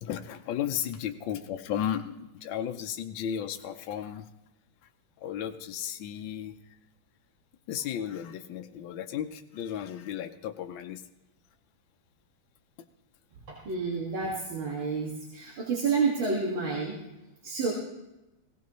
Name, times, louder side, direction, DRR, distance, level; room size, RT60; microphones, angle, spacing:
voice 1, 0.0-4.3 5.2-6.6 7.7-11.0, left 9 dB, 70° left, 6 dB, 1.4 m, -34 dB
voice 2, 13.5-17.0 17.4-17.7, right 4 dB, 75° right, -4 dB, 2.7 m, -29 dB
18.0 x 17.0 x 3.0 m, 0.97 s
omnidirectional pair, 2.2 m